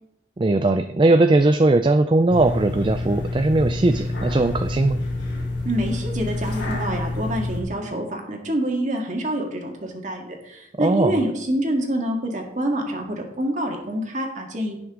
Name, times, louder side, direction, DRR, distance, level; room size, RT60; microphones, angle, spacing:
voice 1, 0.4-5.0 10.8-11.2, right 2 dB, 25° right, 8 dB, 0.4 m, -19 dB
sound 1, 2.3-7.6, left 2 dB, 85° left, 2.9 m, -28 dB
voice 2, 5.6-14.8, right 1 dB, 40° right, 1 dB, 1.9 m, -26 dB
17.0 x 6.1 x 3.7 m, 0.80 s
head